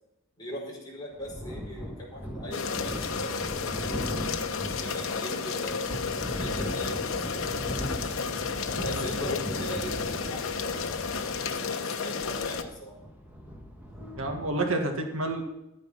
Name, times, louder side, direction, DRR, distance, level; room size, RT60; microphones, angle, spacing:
voice 1, 0.4-3.9 4.6-8.0 8.8-12.9, equal, 20° left, -4 dB, 5.0 m, -40 dB
sound 1, 1.1-14.5, equal, 10° right, 1.7 m, -38 dB
sound 2, 2.5-12.6, left 5 dB, 80° left, 1.0 m, -32 dB
voice 2, 8.7-9.3 14.2-15.4, right 2 dB, 85° right, 4 dB, 1.8 m, -30 dB
13.0 x 9.2 x 5.7 m, 0.90 s
head